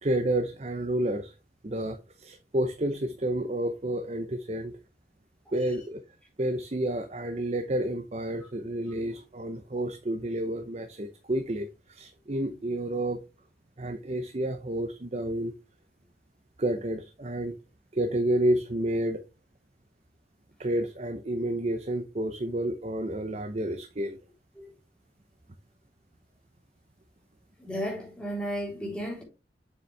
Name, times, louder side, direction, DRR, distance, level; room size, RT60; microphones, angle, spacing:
voice 1, 0.0-1.3 1.6-4.7 5.5-6.0 6.4-13.2 13.8-15.5 16.6-17.6 17.9-19.2 20.6-24.2, right 1 dB, 40° right, 0.7 m, -30 dB
voice 2, 27.6-29.2, equal, 5° left, 3.5 m, -34 dB
6.9 x 6.8 x 3.3 m
head